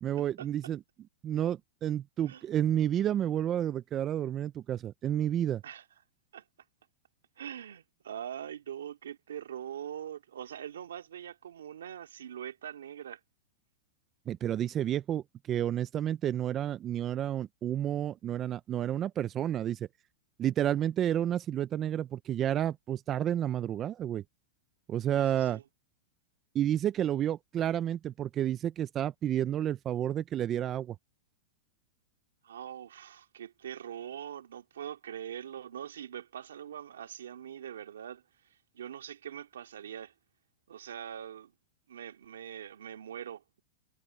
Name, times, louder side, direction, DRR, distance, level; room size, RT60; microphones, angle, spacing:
voice 1, 0.0-0.8 1.2-5.6 14.3-19.9 20.4-24.2 24.9-25.6 26.5-31.0, right 11 dB, 30° right, 0.7 m, -30 dB
voice 2, 7.4-13.2 25.1-25.6 32.4-38.2 38.7-40.1 40.7-41.5 41.9-43.6, right 9 dB, 90° right, 2.8 m, -42 dB
hypercardioid pair, 130°, 0 cm